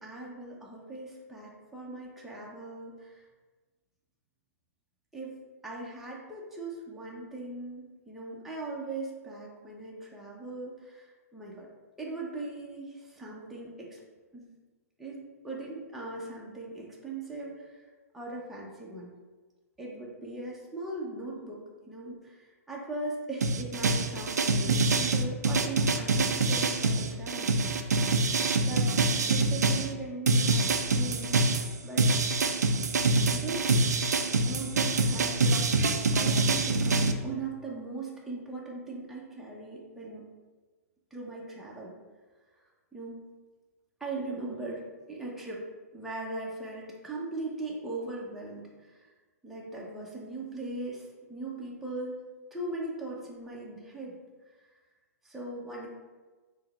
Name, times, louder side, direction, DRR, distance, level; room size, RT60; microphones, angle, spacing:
voice 1, 0.0-3.2 5.1-5.3 5.6-11.7 12.0-14.0 14.3-14.5 15.0-17.9 18.1-19.1 19.8-27.5 28.7-28.9 29.3-31.4 31.8-32.1 33.3-33.7 34.4-35.6 36.1-40.3 41.1-41.9 42.9-43.2 44.0-45.6 45.9-49.1 49.4-52.2 52.5-54.2 55.2-55.9, right 2 dB, ahead, -4 dB, 0.6 m, -39 dB
sound 1, 23.4-29.9 30.3-37.1, right 3 dB, 90° right, 0.4 m, -25 dB
4.4 x 2.0 x 3.4 m, 1.3 s
hypercardioid pair, 130°, 9 cm